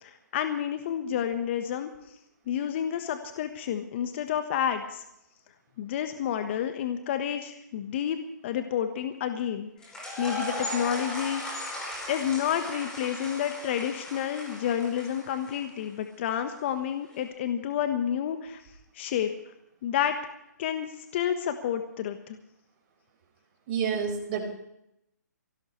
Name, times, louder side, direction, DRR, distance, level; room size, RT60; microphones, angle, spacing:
voice 1, 0.0-1.9 2.5-5.0 5.8-9.7 10.2-11.6 12.1-18.6 18.9-19.3 19.8-20.2 20.6-20.9 21.1-22.4, left 9 dB, 40° left, 7 dB, 1.4 m, -30 dB
sound 1, 9.8-15.8, left 1 dB, 5° left, 5.0 m, -37 dB
voice 2, 23.7-24.5, right 6 dB, 35° right, 0 dB, 5.3 m, -29 dB
23.0 x 17.0 x 3.3 m, 0.79 s
hypercardioid pair, 145°, 10 cm